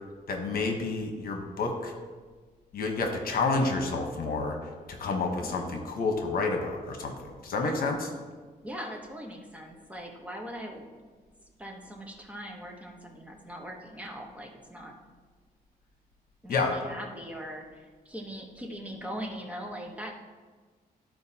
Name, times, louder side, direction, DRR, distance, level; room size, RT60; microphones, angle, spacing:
voice 1, 0.3-1.9 2.7-4.5 4.9-7.1 7.4-8.1 16.5-16.7, left 3 dB, 70° left, 3 dB, 1.1 m, -29 dB
voice 2, 5.0-5.5 7.6-8.1 8.6-10.9 11.6-14.9 16.4-20.1, equal, 10° right, 0 dB, 1.0 m, -41 dB
13.0 x 4.6 x 2.8 m, 1.4 s
cardioid pair, 125°, 16 cm